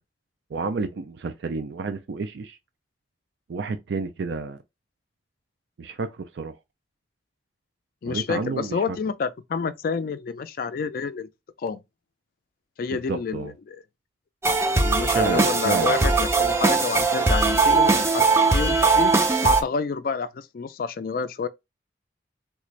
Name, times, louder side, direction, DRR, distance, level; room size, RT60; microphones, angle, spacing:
voice 1, 0.5-2.6 3.5-4.6 5.8-6.5 8.0-9.0 12.9-13.5 15.1-16.1, right 4 dB, 80° right, 0.4 m, -30 dB
voice 2, 8.0-11.3 11.6-11.8 12.8-13.8 14.8-18.3 18.5-19.1 19.4-21.5, left 5 dB, 55° left, 0.3 m, -29 dB
sound 1, 14.4-19.6, right 3 dB, 15° right, 0.4 m, -20 dB
3.6 x 2.5 x 3.1 m
head